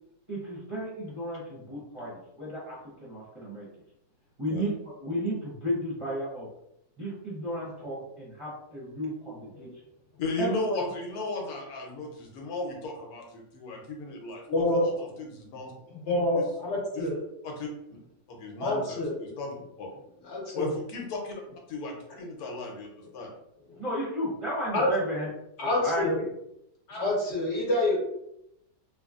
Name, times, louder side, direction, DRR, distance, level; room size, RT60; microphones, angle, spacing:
voice 1, 0.3-3.7 4.4-6.5 7.0-9.7 10.4-10.8 23.8-25.3 25.6-26.3, equal, 30° right, -8 dB, 0.7 m, -33 dB
voice 2, 10.2-15.7 16.3-16.4 16.9-17.1 17.4-17.7 18.3-19.9 20.5-21.3 21.7-23.3, left 2 dB, 90° left, 0 dB, 1.2 m, -35 dB
voice 3, 14.5-14.8 15.9-17.2 18.6-19.1 20.3-20.7 24.7-24.9 25.6-26.2 26.9-28.0, left 2 dB, 55° left, -2 dB, 1.0 m, -27 dB
3.1 x 2.3 x 2.4 m, 0.81 s
omnidirectional pair, 1.6 m